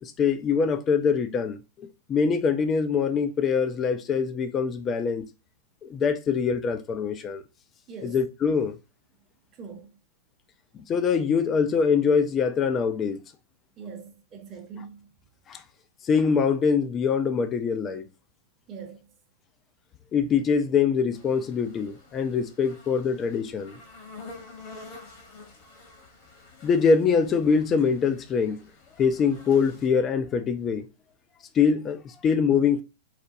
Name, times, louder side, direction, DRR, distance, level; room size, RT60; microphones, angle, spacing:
voice 1, 0.0-5.3 5.8-7.4 8.0-8.8 10.7-13.2 15.5-15.6 16.0-18.1 20.1-23.8 26.6-28.6 29.0-30.9 31.5-32.8, left 6 dB, 25° left, 0.4 m, -24 dB
voice 2, 7.9-8.2 9.5-10.0 13.8-15.1 15.5-15.6 18.7-19.1, right 6 dB, 30° right, 0.9 m, -42 dB
sound 1, 21.1-29.9, left 3 dB, 45° left, 1.2 m, -48 dB
4.1 x 2.1 x 2.7 m
figure-of-eight pair, 105°, 0 cm